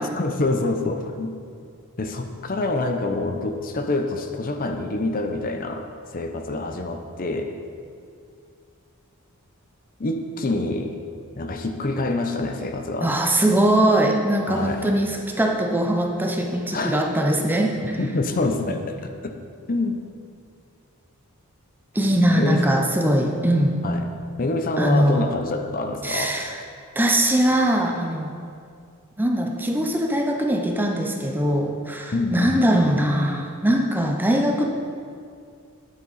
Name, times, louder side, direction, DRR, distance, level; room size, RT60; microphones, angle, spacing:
voice 1, 0.0-1.3 2.0-7.6 10.0-11.0 11.4-13.2 14.5-14.9 16.7-17.0 18.0-19.3 19.7-20.0 22.3-22.6 23.8-24.1 24.4-26.4 32.1-32.5, left 2 dB, 40° left, 5 dB, 0.6 m, -26 dB
voice 2, 13.0-18.0 18.3-18.4 21.9-23.8 24.8-25.3 26.0-26.6 27.0-28.3 29.2-34.7, right 1 dB, 10° right, 2 dB, 0.6 m, -21 dB
9.5 x 8.7 x 4.1 m, 2.3 s
head